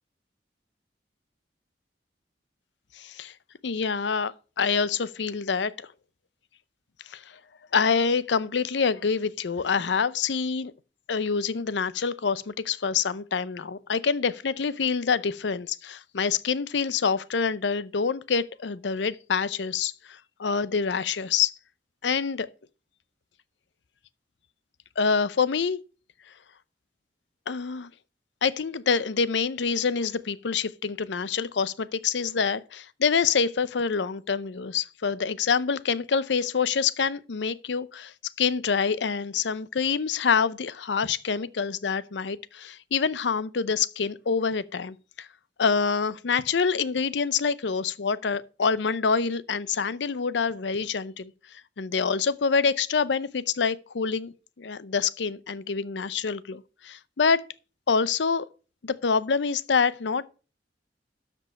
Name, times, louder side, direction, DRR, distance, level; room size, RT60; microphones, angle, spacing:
voice 1, 2.9-3.3 3.6-5.9 7.1-7.4 7.7-10.7 11.1-21.5 22.0-22.5 25.0-25.8 27.5-27.9 28.4-45.3 45.6-57.4 57.9-58.5 58.8-60.3, left 5 dB, 80° left, 0.6 m, -26 dB
12.5 x 5.4 x 5.4 m
head